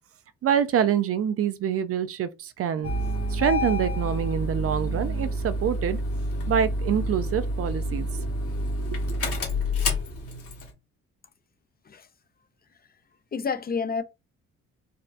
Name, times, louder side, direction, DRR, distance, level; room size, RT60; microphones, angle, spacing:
voice 1, 0.4-2.9 3.3-6.0 6.5-8.3 8.8-9.2, right 8 dB, 50° right, 0.4 m, -26 dB
Engine starting, 2.8-10.7, equal, 50° left, 1.3 m, -28 dB
voice 2, 13.3-14.0, left 5 dB, 30° left, 0.5 m, -29 dB
4.0 x 2.2 x 2.5 m
cardioid pair, 90°, 30 cm